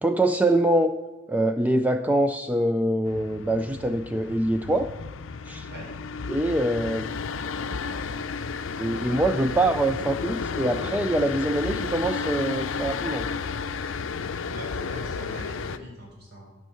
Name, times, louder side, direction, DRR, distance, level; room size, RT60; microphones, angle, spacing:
voice 1, 0.0-0.9 1.3-4.9 5.5-5.7 6.3-7.1 8.8-13.3, right 1 dB, 10° right, 8 dB, 0.3 m, -24 dB
sound 1, 3.1-15.8, left 5 dB, 70° left, 0.5 m, -32 dB
voice 2, 14.5-16.5, right 1 dB, 55° right, -1 dB, 3.6 m, -41 dB
11.0 x 5.3 x 6.7 m, 1.2 s
head